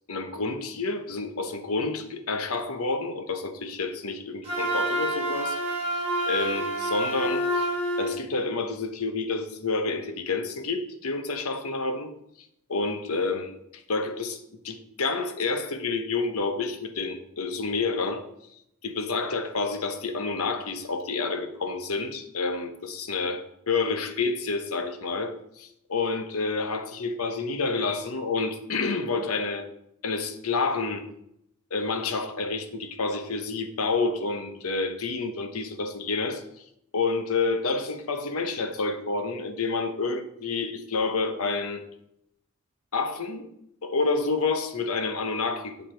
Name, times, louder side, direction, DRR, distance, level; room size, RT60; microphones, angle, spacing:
voice 1, 0.1-5.6 6.3-7.7 8.0-12.1 12.7-18.3 18.8-29.7 30.0-31.1 31.7-36.4 36.9-41.8 42.9-43.4 43.8-45.8, left 3 dB, 80° left, 8 dB, 0.9 m, -29 dB
Wind instrument woodwind instrument, 4.4-8.2, right 1 dB, 25° right, 2.3 m, -28 dB
7.7 x 6.6 x 4.4 m, 0.78 s
head